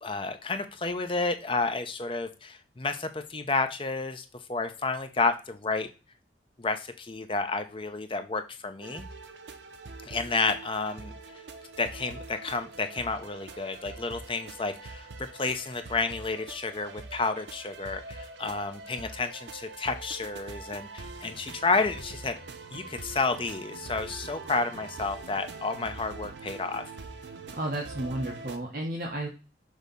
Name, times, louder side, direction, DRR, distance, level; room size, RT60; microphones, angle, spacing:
voice 1, 0.0-5.9 6.6-9.1 10.0-11.1 11.8-22.4 22.7-26.8, left 3 dB, 30° left, 8 dB, 0.7 m, -31 dB
sound 1, 8.8-28.6, right 3 dB, 80° right, 0.7 m, -44 dB
voice 2, 27.5-29.3, right 1 dB, 50° right, 0 dB, 1.0 m, -32 dB
6.5 x 2.9 x 5.2 m, 0.31 s
head